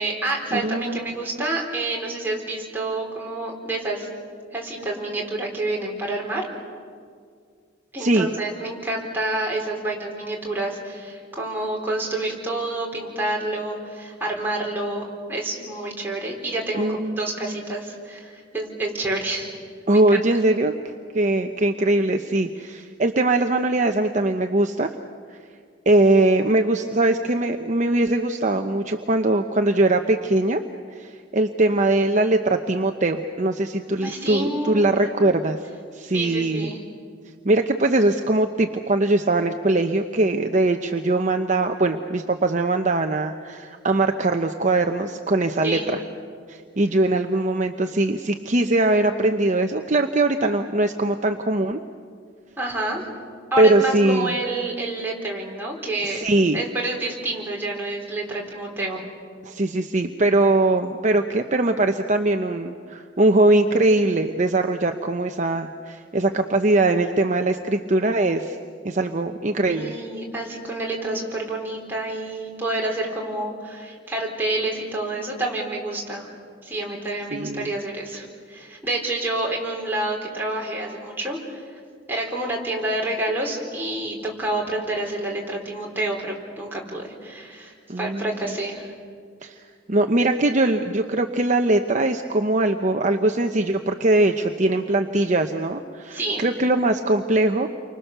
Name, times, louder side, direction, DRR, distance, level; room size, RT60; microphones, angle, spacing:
voice 1, 0.0-4.1 4.5-6.5 7.9-16.9 17.2-19.5 19.9-20.0 34.0-34.9 36.1-36.8 45.6-45.9 52.6-53.1 53.5-56.2 56.5-59.0 69.7-76.3 76.6-81.6 82.1-88.9 96.1-96.5, right 2 dB, 10° right, -2 dB, 4.3 m, -28 dB
voice 2, 0.5-1.2 8.0-8.3 16.7-17.7 19.9-20.7 21.1-24.9 25.3-25.4 25.9-30.6 30.9-35.6 35.9-36.7 37.4-46.0 46.5-51.8 53.6-54.4 56.0-56.6 59.5-68.6 68.8-69.9 77.3-77.7 87.9-88.3 89.4-89.5 89.9-97.7, right 2 dB, 40° right, 5 dB, 0.9 m, -21 dB
30.0 x 24.5 x 6.8 m, 2.1 s
head